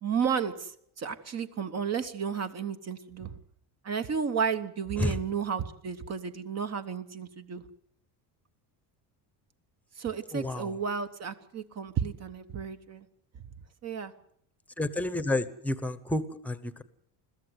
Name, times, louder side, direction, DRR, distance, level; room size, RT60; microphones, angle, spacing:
voice 1, 0.0-0.7 1.0-3.4 3.8-7.6 10.0-13.1 13.8-14.1, right 7 dB, 35° right, 10 dB, 1.2 m, -32 dB
voice 2, 10.3-10.7 14.8-16.8, left 2 dB, 5° left, 14 dB, 1.0 m, -30 dB
22.0 x 15.0 x 8.1 m, 0.68 s
cardioid pair, 155°, 43 cm